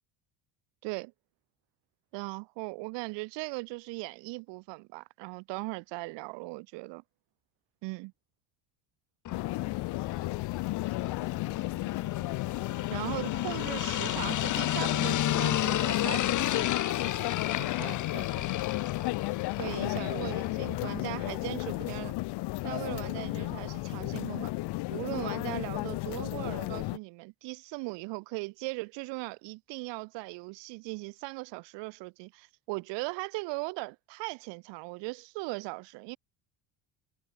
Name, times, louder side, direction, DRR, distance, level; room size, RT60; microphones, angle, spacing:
voice 1, 2.1-7.0 7.8-8.1 12.9-16.7 17.6-18.5 19.6-22.1 22.6-24.5 24.9-36.2, right 27 dB, 75° right, 4.7 m, -39 dB
sound 1, 9.2-20.8, left 12 dB, 45° left, 3.3 m, -33 dB
sound 2, 9.3-27.0, left 21 dB, 65° left, 3.1 m, -33 dB
cardioid pair, 140°, 43 cm